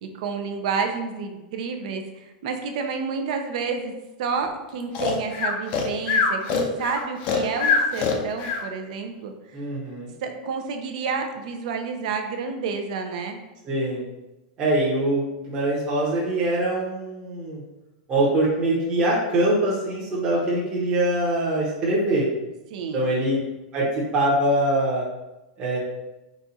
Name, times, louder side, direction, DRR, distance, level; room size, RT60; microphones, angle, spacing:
voice 1, 0.0-3.9 4.2-9.3 10.2-13.4 22.7-23.1, right 5 dB, 55° right, 5 dB, 0.6 m, -30 dB
Breathing, 4.9-8.6, left 5 dB, 35° left, 0.5 m, -23 dB
voice 2, 9.5-10.1 13.6-14.0 14.6-17.6 18.1-22.3 22.9-23.4 23.7-25.0 25.6-25.8, right 1 dB, 20° right, -6 dB, 0.9 m, -23 dB
4.2 x 2.4 x 4.0 m, 1.0 s
supercardioid pair, 160°, 5 cm